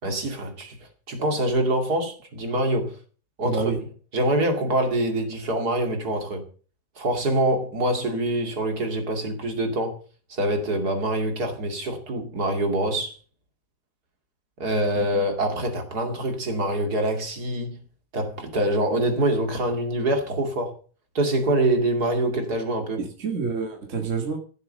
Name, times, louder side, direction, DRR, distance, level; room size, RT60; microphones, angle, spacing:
voice 1, 0.0-3.0 3.4-6.4 6.9-10.0 10.3-13.2 14.6-17.8 18.1-20.7 21.1-23.0, right 1 dB, 65° right, 2.9 m, -25 dB
voice 2, 3.4-3.8 15.0-15.1 23.0-24.4, right 5 dB, 45° right, 2.3 m, -28 dB
15.0 x 7.9 x 6.5 m
omnidirectional pair, 1.8 m